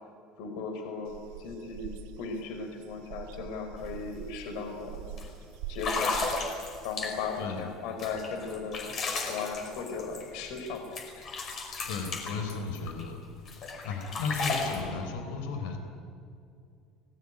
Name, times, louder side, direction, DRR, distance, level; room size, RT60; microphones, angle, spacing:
voice 1, 0.4-5.0 5.7-6.5 6.8-9.0 9.3-11.0, left 4 dB, 60° left, 5 dB, 4.8 m, -37 dB
sound 1, 1.1-6.3, right 7 dB, 80° right, 1.8 m, -44 dB
sound 2, 3.8-3.9 4.2-4.5 5.2-5.3 5.7-7.4 8.0-10.7 11.0-13.0 13.5-14.8, left 4 dB, 30° left, 5.2 m, -34 dB
voice 2, 7.4-7.7 11.9-13.2 13.8-15.8, left 5 dB, 90° left, 7 dB, 4.2 m, -34 dB
30.0 x 20.0 x 10.0 m, 2.4 s
cardioid pair, 175°, 0 cm